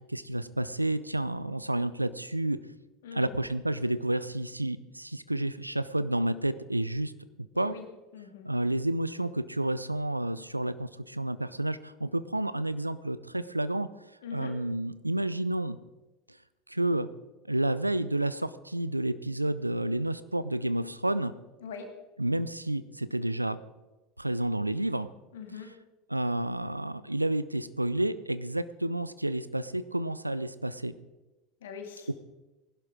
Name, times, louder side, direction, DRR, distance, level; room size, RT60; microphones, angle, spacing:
voice 1, 0.1-2.6 3.1-7.1 7.6-7.7 8.4-13.9 14.3-15.8 16.3-16.4 16.7-17.1 17.5-21.3 22.2-23.6 24.2-25.1 26.1-30.9, right 1 dB, 90° right, 15 dB, 0.5 m, -30 dB
voice 2, 3.0-3.4 7.5-7.9 8.1-8.5 14.2-14.6 21.6-21.9 25.3-25.7 31.6-32.1, left 6 dB, 65° left, 4 dB, 2.2 m, -42 dB
19.0 x 11.5 x 3.7 m, 1.1 s
figure-of-eight pair, 75°, 0 cm